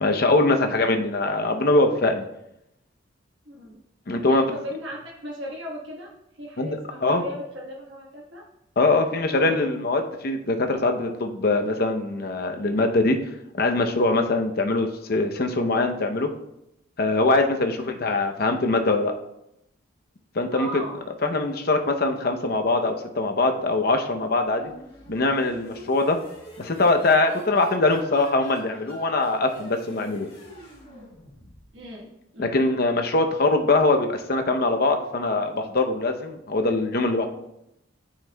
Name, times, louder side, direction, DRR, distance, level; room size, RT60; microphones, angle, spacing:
voice 1, 0.0-2.2 4.1-4.4 6.6-7.2 8.8-13.2 13.6-16.3 17.0-19.1 20.3-20.7 21.2-24.7 25.1-26.2 26.6-30.3 32.4-37.3, left 2 dB, 50° left, 5 dB, 0.7 m, -22 dB
voice 2, 3.4-3.8 4.2-8.4 9.3-9.5 17.7-17.9 20.5-21.0 31.7-32.6, equal, 70° right, -4 dB, 1.3 m, -37 dB
sound 1, 24.3-31.9, left 1 dB, 30° left, 2.2 m, -45 dB
10.0 x 5.7 x 2.2 m, 0.82 s
head